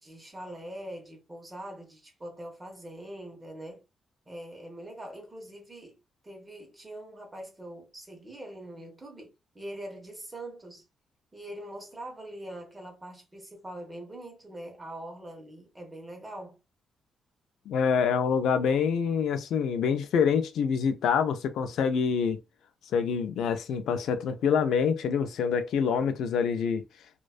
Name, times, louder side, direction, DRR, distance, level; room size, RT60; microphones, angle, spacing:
voice 1, 0.0-3.8 4.3-6.0 6.2-10.9 11.3-16.6, right 1 dB, 15° right, 0.7 m, -43 dB
voice 2, 17.7-22.4 22.9-26.8, left 6 dB, 80° left, 0.3 m, -26 dB
2.5 x 2.1 x 2.3 m
wide cardioid pair, 170°, 0 cm